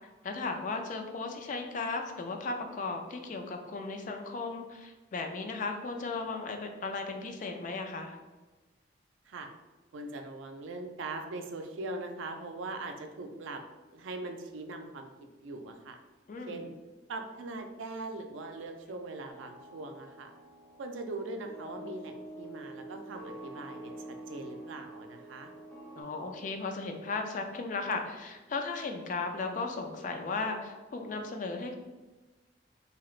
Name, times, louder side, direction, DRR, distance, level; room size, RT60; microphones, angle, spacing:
voice 1, 0.2-8.2 16.3-16.7 26.0-31.7, left 3 dB, 40° left, 4 dB, 0.3 m, -36 dB
voice 2, 9.9-13.6 13.9-15.1 15.4-16.0 16.5-16.7 17.1-20.3 20.8-25.5, right 2 dB, 80° right, 5 dB, 0.4 m, -41 dB
sound 1, 19.3-26.0, right 1 dB, 5° left, 0.9 m, -47 dB
3.1 x 2.8 x 2.4 m, 1.2 s
head